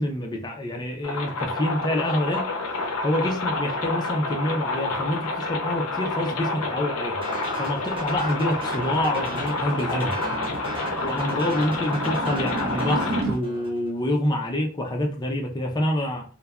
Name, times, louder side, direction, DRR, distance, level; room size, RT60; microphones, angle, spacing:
voice 1, 0.0-2.5 3.0-7.2 7.6-10.2 11.0-16.2, left 1 dB, 20° left, 0.4 m, -27 dB
sound 1, 1.0-13.2, left 3 dB, 85° left, 0.5 m, -29 dB
sound 2, 7.2-13.9, right 1 dB, 25° right, 0.7 m, -37 dB
sound 3, 7.4-13.4, right 2 dB, 65° right, 0.5 m, -34 dB
2.9 x 2.1 x 2.4 m
head